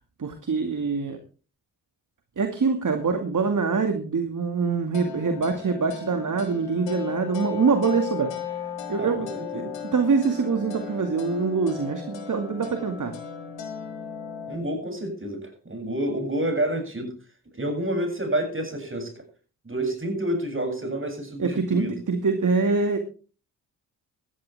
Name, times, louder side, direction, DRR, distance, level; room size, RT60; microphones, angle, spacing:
voice 1, 0.2-1.2 2.4-8.3 8.9-13.2 21.4-23.0, right 4 dB, 45° right, 6 dB, 2.2 m, -24 dB
sound 1, 4.9-14.6, left 7 dB, 85° left, 3.0 m, -36 dB
voice 2, 9.0-9.7 14.5-17.1 17.6-19.2 19.6-21.9, right 1 dB, 30° right, 5 dB, 7.6 m, -29 dB
18.5 x 13.5 x 3.5 m, 0.37 s
hypercardioid pair, 40°, 43 cm